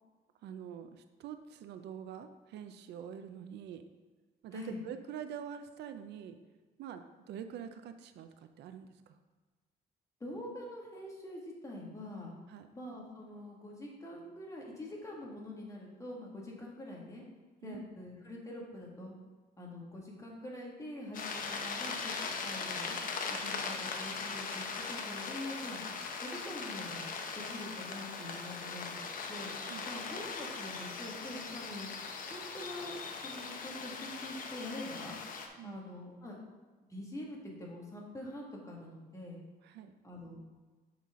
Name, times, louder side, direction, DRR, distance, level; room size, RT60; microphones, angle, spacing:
voice 1, 0.4-3.8 4.4-6.4 6.8-9.2 12.5-12.7 17.6-17.8 29.7-29.9 35.6-35.8 39.6-40.0, right 8 dB, 80° right, 8 dB, 0.5 m, -45 dB
voice 2, 10.2-12.3 12.7-17.2 17.6-19.1 19.6-22.1 22.4-23.0 23.3-25.8 26.2-27.0 27.5-29.0 29.3-29.5 29.9-31.9 32.3-33.0 33.2-35.2 35.6-36.4 36.8-39.4 40.0-40.4, left 1 dB, 20° left, -2 dB, 1.8 m, -45 dB
sound 1, 21.1-35.5, left 4 dB, 55° left, 0.8 m, -40 dB
7.3 x 5.7 x 3.6 m, 1.4 s
cardioid pair, 115°, 17 cm